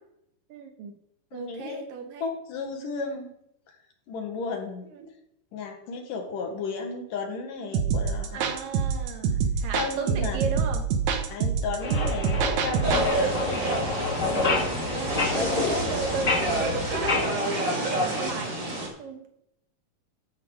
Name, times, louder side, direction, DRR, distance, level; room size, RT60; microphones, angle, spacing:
voice 1, 0.5-0.9 1.3-2.3 4.9-5.1 8.3-10.9 12.8-13.3 14.3-19.4, right 5 dB, 80° right, 5 dB, 3.0 m, -36 dB
voice 2, 1.3-1.8 2.2-3.3 4.1-4.9 5.5-8.4 9.7-10.4 11.3-13.0 14.2-14.7 15.4-15.8, left 4 dB, 70° left, 3 dB, 3.4 m, -33 dB
sound 1, 7.7-13.1, right 6 dB, 65° right, 2.2 m, -26 dB
sound 2, 11.8-17.3, left 3 dB, 25° left, 2.2 m, -28 dB
sound 3, 12.8-18.9, right 1 dB, 35° right, 3.7 m, -29 dB
14.0 x 8.8 x 5.0 m, 0.76 s
omnidirectional pair, 3.9 m